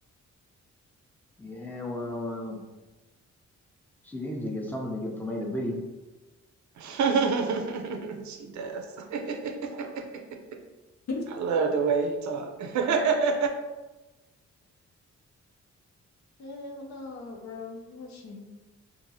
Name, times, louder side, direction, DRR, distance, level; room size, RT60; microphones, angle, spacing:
voice 1, 1.4-2.6 4.0-5.8, left 1 dB, 5° left, -1 dB, 0.5 m, -33 dB
voice 2, 6.8-10.6 11.3-13.5, right 5 dB, 75° right, 5 dB, 0.5 m, -28 dB
voice 3, 16.4-18.4, left 3 dB, 70° left, 2 dB, 0.6 m, -38 dB
2.8 x 2.5 x 2.7 m, 1.1 s
cardioid pair, 100°, 29 cm